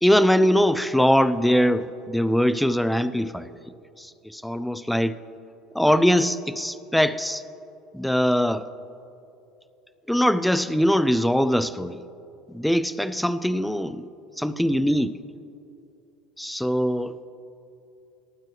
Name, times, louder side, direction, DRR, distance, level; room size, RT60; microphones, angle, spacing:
voice 1, 0.0-3.5 4.0-5.1 5.7-7.4 7.9-8.7 10.1-12.0 12.5-14.1 14.4-15.1 16.4-17.2, equal, ahead, 0.3 m, -22 dB
19.5 x 9.4 x 3.2 m
cardioid pair, 150°, 0 cm